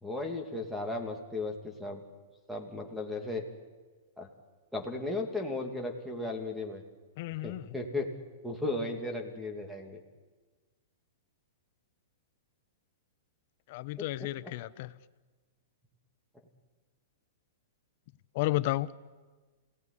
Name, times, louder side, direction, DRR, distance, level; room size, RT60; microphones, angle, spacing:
voice 1, 0.0-2.0 2.5-3.4 4.2-4.3 4.7-6.8 7.4-8.1 8.4-10.0 14.0-14.1 14.4-14.5, left 2 dB, ahead, 2.6 m, -35 dB
voice 2, 7.2-7.6 13.7-14.9 18.3-18.9, left 17 dB, 45° left, 0.8 m, -32 dB
27.5 x 18.5 x 9.9 m
hypercardioid pair, 160°, 0 cm